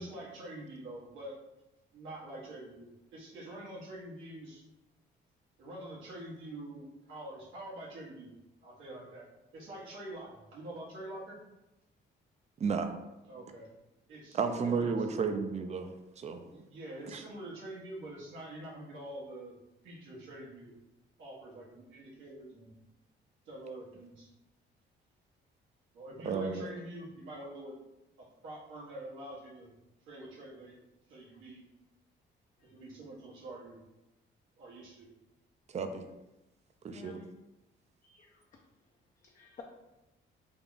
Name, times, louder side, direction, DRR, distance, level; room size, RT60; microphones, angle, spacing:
voice 1, 0.0-1.3 1.9-4.6 5.6-8.3 8.6-9.3 9.5-11.4 13.2-13.7 14.1-15.1 16.5-19.6 19.8-20.7 21.2-22.7 23.4-24.3 25.9-27.7 28.2-29.7 30.0-30.8 31.1-31.6 32.6-33.8 34.6-35.1, right 1 dB, 85° right, -5 dB, 1.4 m, -46 dB
voice 2, 12.6-12.9 14.3-16.4 17.1-17.2 26.2-26.7 35.7-36.0 36.8-37.2, right 5 dB, 35° right, 7 dB, 0.4 m, -32 dB
voice 3, 36.9-37.3 38.0-38.6 39.2-39.6, left 6 dB, 40° left, 0 dB, 0.5 m, -53 dB
3.5 x 2.3 x 3.9 m, 0.96 s
cardioid pair, 90°, 20 cm